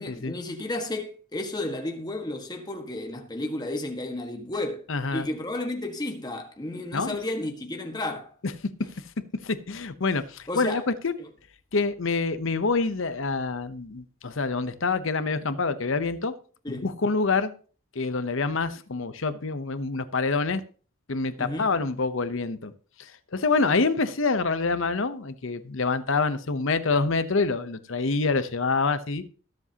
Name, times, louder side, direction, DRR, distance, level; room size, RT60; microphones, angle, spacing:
voice 1, 0.0-4.8 5.1-8.3 10.5-10.8 11.2-11.3 16.6-16.9 21.4-21.7, left 2 dB, 20° left, 1.5 m, -32 dB
voice 2, 4.9-5.3 6.9-7.2 8.4-8.5 9.4-11.1 11.7-16.3 16.7-17.5 17.9-20.6 21.1-22.7 23.0-29.2, left 4 dB, 65° left, 0.8 m, -26 dB
21.0 x 7.4 x 2.9 m
head